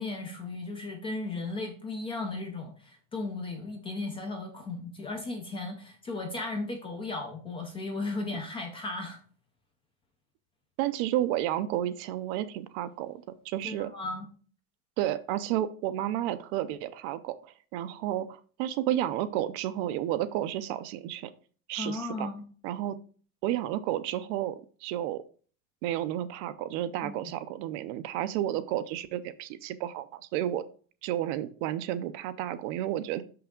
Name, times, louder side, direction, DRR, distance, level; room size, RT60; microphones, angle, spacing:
voice 1, 0.0-9.2 13.6-14.3 21.8-22.4 27.0-27.2, left 2 dB, 15° left, 3 dB, 0.4 m, -36 dB
voice 2, 10.8-13.9 15.0-21.3 21.7-22.3 22.6-23.0 23.4-25.2 25.8-30.6 31.0-33.2, right 12 dB, 50° right, 13 dB, 0.5 m, -31 dB
6.2 x 5.8 x 3.7 m, 0.42 s
cardioid pair, 180°, 41 cm